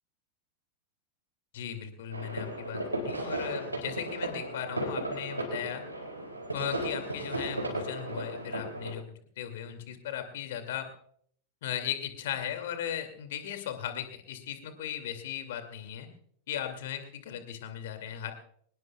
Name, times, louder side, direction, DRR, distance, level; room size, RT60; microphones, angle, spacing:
voice 1, 1.5-5.8 6.5-9.0 9.4-10.9 11.6-16.1 16.5-18.3, left 9 dB, 55° left, 7 dB, 2.4 m, -37 dB
sound 1, 2.1-8.9, right 1 dB, 85° right, 4.6 m, -35 dB
25.0 x 20.0 x 2.3 m, 0.63 s
figure-of-eight pair, 90°, 0 cm